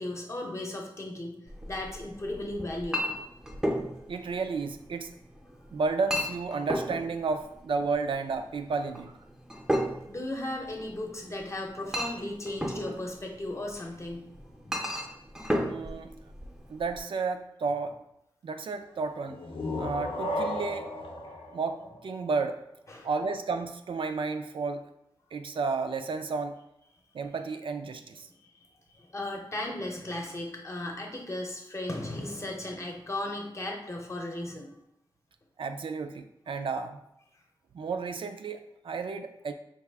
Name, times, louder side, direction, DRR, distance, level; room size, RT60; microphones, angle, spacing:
voice 1, 0.0-1.4 1.7-3.2 10.1-14.3 14.6-14.8 22.9-23.1 28.4-28.5 28.9-34.7, left 1 dB, 35° left, 1 dB, 0.7 m, -36 dB
Chink clink, 1.5-17.0, equal, 5° right, 0.5 m, -35 dB
voice 2, 4.1-5.1 5.7-9.1 15.6-16.1 16.7-18.0 18.4-19.4 19.8-20.9 21.5-22.6 23.0-24.9 25.3-26.6 27.1-28.3 35.6-37.0 37.7-39.5, right 4 dB, 75° right, 7 dB, 0.3 m, -32 dB
sound 1, 19.2-22.8, left 1 dB, 85° left, 0.6 m, -35 dB
4.6 x 2.4 x 3.4 m, 0.80 s
wide cardioid pair, 115°, 9 cm